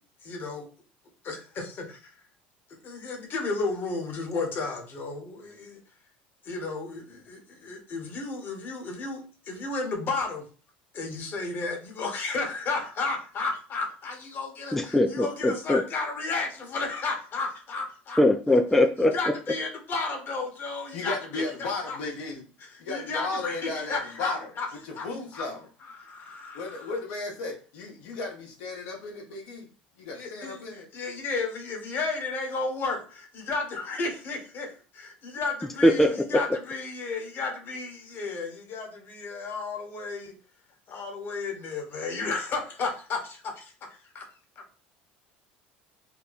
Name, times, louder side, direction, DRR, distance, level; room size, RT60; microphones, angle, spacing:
voice 1, 0.2-0.7 1.2-2.1 2.8-5.8 6.4-10.5 10.9-18.2 18.5-18.6 19.1-21.4 21.9-22.0 22.9-24.7 25.0-25.1 25.3-25.4 26.0-26.9 30.1-40.4 40.9-44.2, left 3 dB, 45° left, 2 dB, 1.2 m, -33 dB
voice 2, 14.7-15.8 18.2-19.1 35.8-36.1, left 1 dB, 5° left, 4 dB, 0.4 m, -21 dB
voice 3, 20.9-22.4 22.8-25.7 26.5-29.7 30.0-30.9, left 3 dB, 75° left, -1 dB, 1.1 m, -35 dB
2.8 x 2.2 x 3.9 m, 0.38 s
hypercardioid pair, 80°, 5 cm